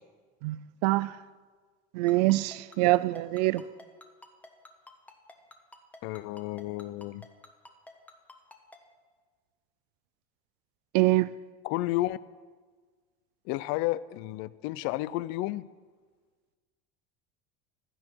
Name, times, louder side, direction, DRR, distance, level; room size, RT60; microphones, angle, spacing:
voice 1, 0.4-1.1 1.9-3.6 10.9-11.3, right 19 dB, 80° right, 0.5 m, -25 dB
Ringtone, 2.1-8.8, left 1 dB, 5° left, 1.1 m, -49 dB
voice 2, 6.0-7.2 11.6-12.2 13.5-15.7, left 16 dB, 65° left, 0.5 m, -31 dB
15.5 x 12.0 x 4.6 m
cardioid pair, 145°, 20 cm